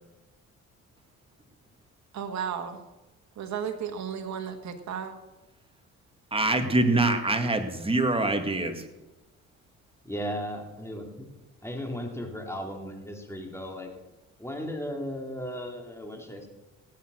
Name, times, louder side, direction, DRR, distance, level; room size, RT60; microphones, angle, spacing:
voice 1, 2.1-2.8 3.4-5.1, right 7 dB, 65° right, 5 dB, 1.6 m, -34 dB
voice 2, 6.3-8.7, right 2 dB, 20° right, 6 dB, 2.1 m, -24 dB
voice 3, 10.0-11.1 11.6-13.9 14.4-16.5, equal, 10° left, 2 dB, 3.1 m, -36 dB
17.5 x 8.7 x 6.4 m, 1.0 s
cardioid pair, 90°, 30 cm